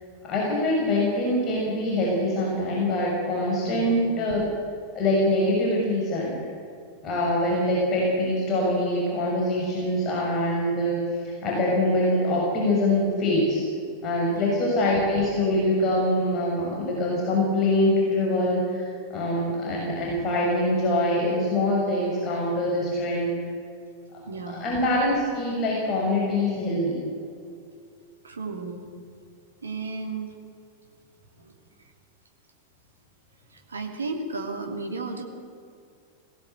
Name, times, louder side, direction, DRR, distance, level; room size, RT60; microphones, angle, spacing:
voice 1, 0.2-4.4 4.9-6.4 7.0-11.0 11.2-13.6 14.0-23.3 24.5-27.0, left 1 dB, 30° left, -3 dB, 6.3 m, -24 dB
voice 2, 24.3-24.7 28.2-28.8 29.6-30.4 31.4-31.6 33.5-35.2, right 3 dB, 75° right, 3 dB, 2.7 m, -34 dB
20.5 x 17.5 x 8.0 m, 2.3 s
figure-of-eight pair, 90°, 0 cm